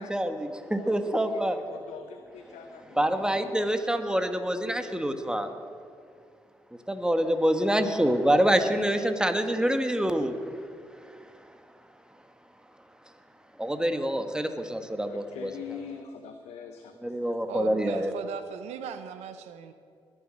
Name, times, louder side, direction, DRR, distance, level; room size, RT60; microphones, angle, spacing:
voice 1, 0.0-1.6 2.9-5.5 6.9-10.7 13.6-15.5 17.0-18.1, equal, 5° right, 7 dB, 1.6 m, -26 dB
voice 2, 0.8-3.1 15.0-17.3, left 7 dB, 80° left, 6 dB, 0.8 m, -44 dB
voice 3, 17.5-19.7, right 7 dB, 85° right, 10 dB, 0.7 m, -38 dB
21.0 x 7.4 x 6.4 m, 2.2 s
supercardioid pair, 50°, 11 cm